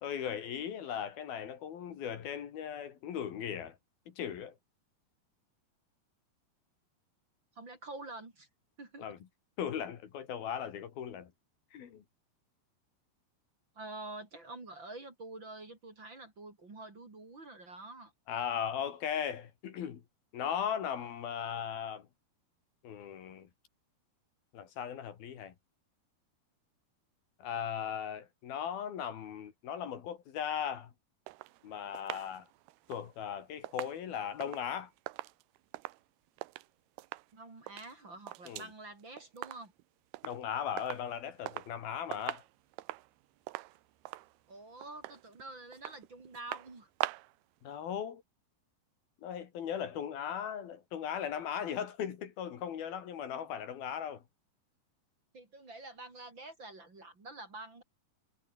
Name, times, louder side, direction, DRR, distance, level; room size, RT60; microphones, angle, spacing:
voice 1, 0.0-3.8 4.1-4.6 9.0-9.2 9.6-11.3 11.7-12.0 18.3-20.0 20.3-22.1 22.8-23.5 24.5-25.5 27.4-30.9 31.6-32.5 32.9-34.9 38.5-38.7 40.2-42.4 47.6-48.2 49.2-54.2, left 8 dB, 70° left, 4.0 m, -38 dB
voice 2, 7.5-8.5 8.8-9.1 13.8-18.1 37.3-39.7 44.5-46.9 55.3-57.8, right 2 dB, 30° right, 4.3 m, -47 dB
sound 1, 31.3-36.7 37.0-37.3 37.6-38.7 39.0-39.8 40.1-40.4 40.8-41.8 42.1-47.4 47.7-47.8, right 19 dB, 90° right, 2.6 m, -43 dB
omnidirectional pair, 4.6 m